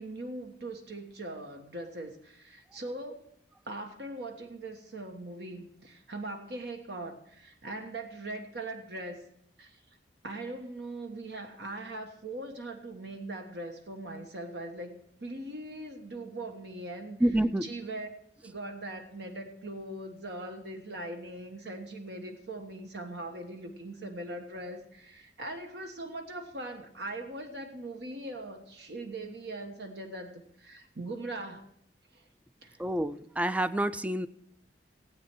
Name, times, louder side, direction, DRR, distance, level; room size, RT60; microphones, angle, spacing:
voice 1, 0.0-3.2 3.6-9.3 9.6-9.8 10.2-17.2 17.6-18.1 18.4-31.7 32.1-32.3 32.6-32.8, right 2 dB, 65° right, 5 dB, 1.3 m, -40 dB
voice 2, 17.2-17.7 32.8-34.3, right 1 dB, 10° right, 14 dB, 0.4 m, -28 dB
16.5 x 8.5 x 4.6 m, 0.73 s
head